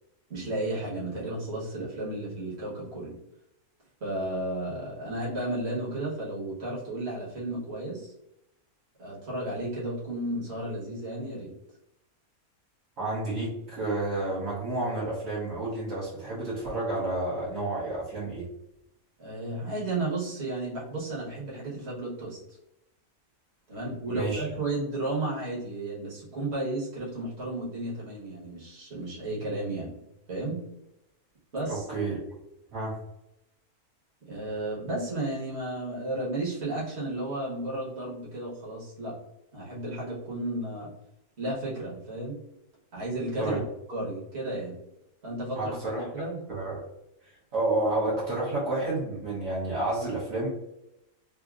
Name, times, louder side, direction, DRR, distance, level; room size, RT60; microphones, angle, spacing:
voice 1, 0.3-3.1 4.0-8.1 9.0-11.5 19.2-22.6 23.7-30.0 30.3-30.6 31.5-31.9 34.3-39.1 39.5-40.9 41.4-42.3 42.9-43.6 43.9-44.8 45.2-46.4, right 2 dB, 45° right, -6 dB, 1.4 m, -33 dB
voice 2, 13.0-18.5 24.1-24.5 31.7-32.2 32.7-33.0 43.4-43.6 45.5-46.8 47.5-50.5, right 2 dB, 65° right, -8 dB, 1.4 m, -30 dB
3.5 x 2.6 x 2.4 m, 0.85 s
omnidirectional pair, 1.6 m